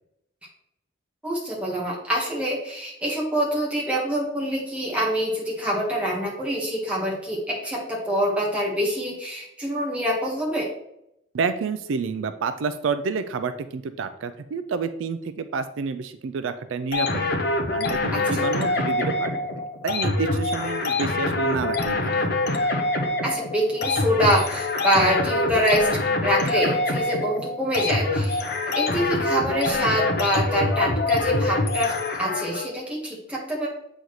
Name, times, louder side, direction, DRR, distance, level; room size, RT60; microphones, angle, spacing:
voice 1, 1.2-10.7 18.3-18.5 23.2-25.9 26.2-28.4 28.7-31.9 32.2-33.7, equal, 5° right, -4 dB, 1.5 m, -25 dB
voice 2, 11.3-17.4 17.7-22.3, right 5 dB, 75° right, 10 dB, 0.4 m, -29 dB
sound 1, 16.9-32.7, left 2 dB, 50° left, 0.8 m, -25 dB
8.0 x 4.0 x 3.1 m, 0.80 s
head